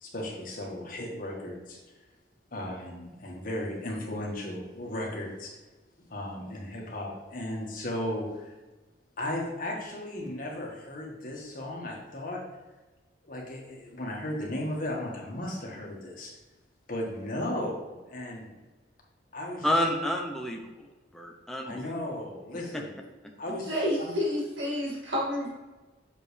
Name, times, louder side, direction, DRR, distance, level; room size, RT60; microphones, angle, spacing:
voice 1, 0.0-1.8 2.5-5.6 6.1-8.5 9.2-12.4 13.2-16.4 16.9-18.6 19.3-19.7 21.6-22.9 23.4-24.1, left 1 dB, 45° left, -1 dB, 1.5 m, -35 dB
voice 2, 19.6-21.9, left 1 dB, ahead, 1 dB, 0.6 m, -30 dB
voice 3, 23.7-25.5, equal, 65° right, -4 dB, 2.2 m, -29 dB
7.4 x 5.2 x 3.3 m, 1.2 s
head